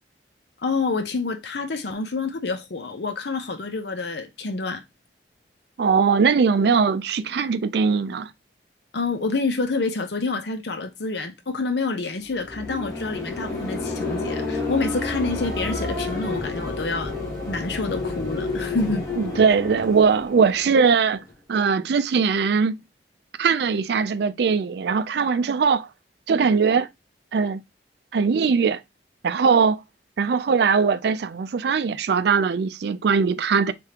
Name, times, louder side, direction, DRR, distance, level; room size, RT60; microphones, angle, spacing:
voice 1, 0.6-4.8 8.9-17.1 17.4-19.1, left 3 dB, 70° left, 0.8 m, -27 dB
voice 2, 5.8-8.3 19.2-21.2 21.5-22.8 23.4-25.9 26.3-26.9 27.3-27.6 28.1-28.8 29.2-29.8 30.2-33.7, right 5 dB, 65° right, 0.4 m, -20 dB
sound 1, 12.3-21.3, left 3 dB, 20° left, 1.6 m, -30 dB
4.9 x 3.5 x 2.9 m
head